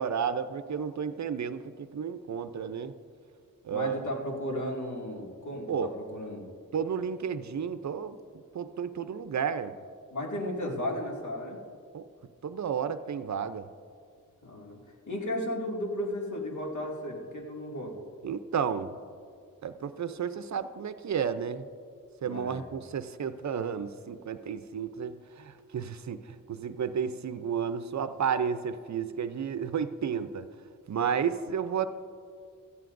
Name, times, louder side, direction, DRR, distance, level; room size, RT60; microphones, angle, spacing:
voice 1, 0.0-2.9 3.6-4.0 5.7-5.9 6.7-8.2 8.5-9.8 11.9-12.1 12.4-13.7 18.2-18.9 19.6-21.7 22.2-30.5 30.9-31.9, right 7 dB, 55° right, 11 dB, 0.6 m, -32 dB
voice 2, 3.7-6.4 10.1-11.6 14.4-14.8 15.1-17.9 22.2-22.7, left 1 dB, 60° left, -1 dB, 2.3 m, -34 dB
17.0 x 14.0 x 2.6 m, 2.3 s
cardioid pair, 80°, 33 cm